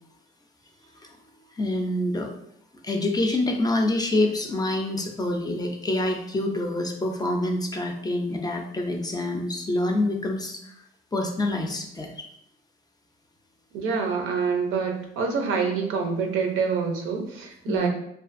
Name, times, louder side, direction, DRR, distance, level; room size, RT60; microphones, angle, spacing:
voice 1, 1.6-2.3 2.8-10.7 11.1-12.3 17.7-17.9, left 1 dB, 20° left, 3 dB, 0.4 m, -26 dB
voice 2, 13.7-17.9, right 5 dB, 90° right, 2 dB, 0.5 m, -26 dB
2.4 x 2.3 x 2.5 m, 0.72 s
cardioid pair, 90°, 20 cm